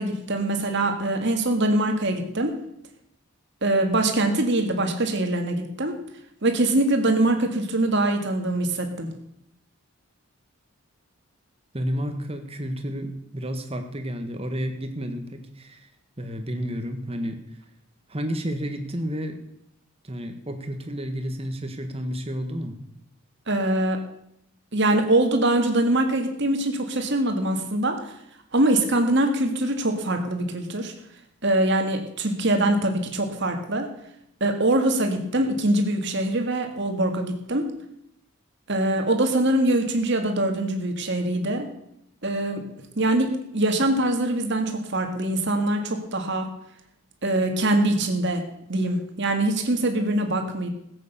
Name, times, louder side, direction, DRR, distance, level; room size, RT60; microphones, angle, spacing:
voice 1, 0.0-2.6 3.6-6.0 6.4-9.1 23.5-24.0 24.7-28.0 28.5-30.9 31.4-33.9 34.4-37.7 38.7-41.7 42.2-42.6 43.0-46.5 47.2-48.4 48.7-50.7, right 1 dB, 55° right, 5 dB, 1.9 m, -23 dB
voice 2, 11.7-15.9 16.2-17.4 18.1-19.4 20.0-22.8, equal, 25° right, 6 dB, 1.5 m, -31 dB
15.5 x 8.3 x 6.9 m, 0.78 s
head